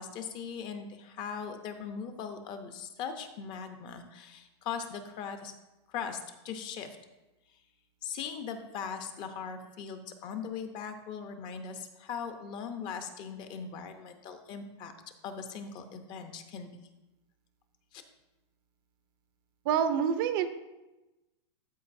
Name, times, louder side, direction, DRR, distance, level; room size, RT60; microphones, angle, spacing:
voice 1, 0.0-5.5 5.9-6.2 6.4-7.0 8.0-14.9 15.2-16.7 17.9-18.0, left 6 dB, 30° left, 7 dB, 0.7 m, -39 dB
voice 2, 19.7-20.5, right 8 dB, 50° right, 10 dB, 0.6 m, -26 dB
12.0 x 4.5 x 2.6 m, 1.0 s
supercardioid pair, 145°, 15 cm